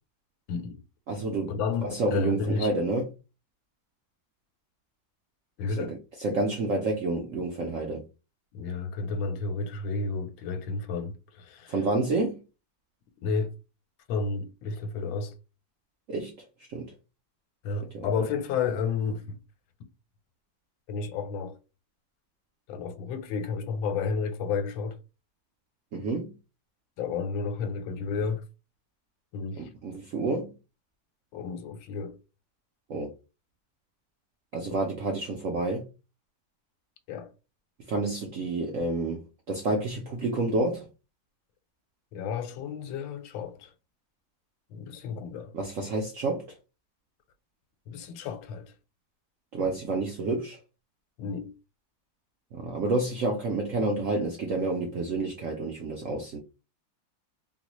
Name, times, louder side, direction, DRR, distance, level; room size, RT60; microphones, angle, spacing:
voice 1, 0.5-0.8 1.5-2.7 5.6-5.9 8.5-11.7 13.2-13.5 14.1-15.3 17.6-19.4 20.9-21.6 22.7-25.0 27.0-28.4 29.3-29.7 31.3-32.2 34.7-34.8 37.1-37.3 42.1-43.7 44.7-45.5 47.9-48.7 51.2-51.5, left 5 dB, 90° left, 1.4 m, -31 dB
voice 2, 1.1-1.6 1.8-3.1 5.8-8.0 11.7-12.4 16.1-16.3 16.7-16.9 17.9-18.1 25.9-26.3 29.5-30.5 32.9-33.1 34.5-35.9 37.9-40.9 45.5-46.5 49.5-50.6 52.5-56.4, right 2 dB, 70° right, 0.7 m, -29 dB
3.8 x 2.2 x 3.0 m
omnidirectional pair, 2.1 m